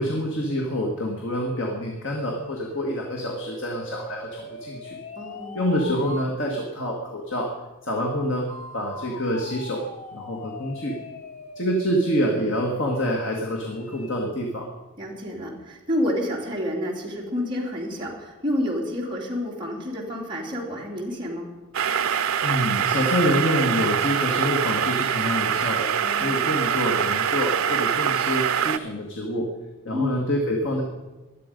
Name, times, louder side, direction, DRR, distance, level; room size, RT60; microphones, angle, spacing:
voice 1, 0.0-5.0 5.5-7.5 7.8-11.0 11.6-14.7 22.4-29.5 29.9-30.8, equal, 55° left, 0 dB, 1.9 m, -27 dB
sound 1, 1.1-6.3 8.5-14.3, left 2 dB, 35° left, 0.9 m, -40 dB
voice 2, 5.2-5.6 15.0-21.5 26.0-26.4 29.9-30.2, left 1 dB, 20° right, -3 dB, 3.1 m, -29 dB
electric kettle, 21.7-28.8, right 8 dB, 75° right, 0.6 m, -24 dB
19.0 x 12.0 x 5.3 m, 1.1 s
head